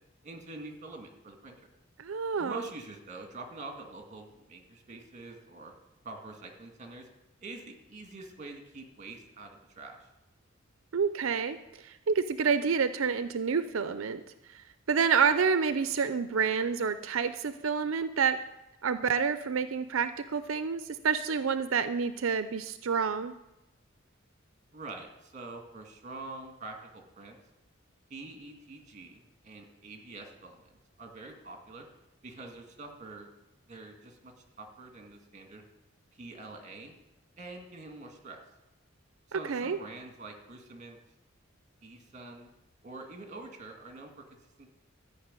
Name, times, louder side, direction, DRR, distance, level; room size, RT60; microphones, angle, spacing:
voice 1, 0.2-1.6 2.4-5.7 6.0-7.1 7.4-10.1 24.7-27.4 28.1-31.9 32.2-33.3 33.7-35.6 36.1-37.0 37.4-38.4 39.3-41.0 41.8-42.5 42.8-44.2 44.6-44.7, right 3 dB, 40° right, 3 dB, 2.0 m, -45 dB
voice 2, 2.0-2.6 10.9-14.2 14.5-18.4 18.8-23.3 39.3-39.8, right 6 dB, 85° right, 12 dB, 0.5 m, -28 dB
13.5 x 5.9 x 9.0 m, 0.94 s
head